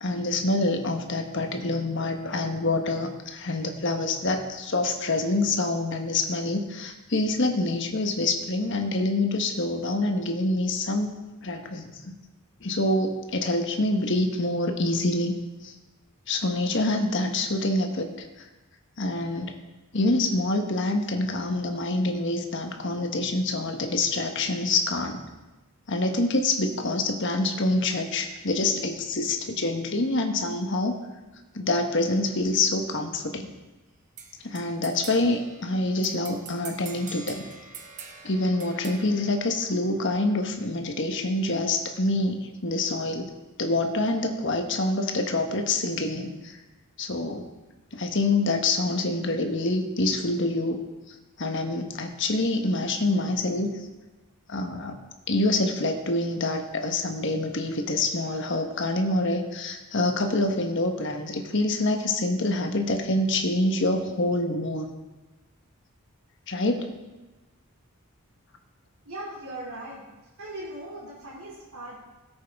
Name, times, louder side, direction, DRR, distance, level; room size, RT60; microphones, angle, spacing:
voice 1, 0.0-11.1 11.4-12.2 12.6-15.3 15.6-15.7 16.3-18.5 19.0-19.5 19.9-25.2 25.9-31.0 31.5-33.5 34.4-37.5 38.2-43.3 43.6-46.6 47.0-47.4 47.9-50.8 51.1-53.9 54.5-55.0 55.3-64.9 66.5-66.9, left 2 dB, 60° left, 5 dB, 1.2 m, -26 dB
sound 1, 34.2-40.2, right 5 dB, 35° right, 1.0 m, -45 dB
voice 2, 69.0-70.0 70.4-72.0, right 1 dB, 80° right, -8 dB, 2.8 m, -39 dB
17.0 x 8.5 x 3.6 m, 1.1 s
head